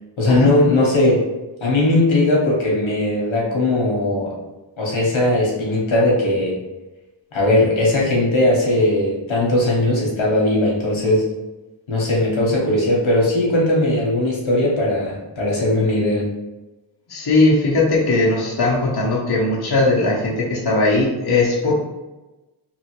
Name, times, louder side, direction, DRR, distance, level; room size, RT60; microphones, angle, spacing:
voice 1, 0.2-1.2 1.6-4.3 4.8-6.5 7.3-11.3 11.9-16.2, left 1 dB, 85° left, -4 dB, 1.0 m, -18 dB
voice 2, 17.1-21.7, left 2 dB, 55° left, -4 dB, 0.8 m, -18 dB
2.9 x 2.7 x 2.9 m, 1.1 s
wide cardioid pair, 60°, 46 cm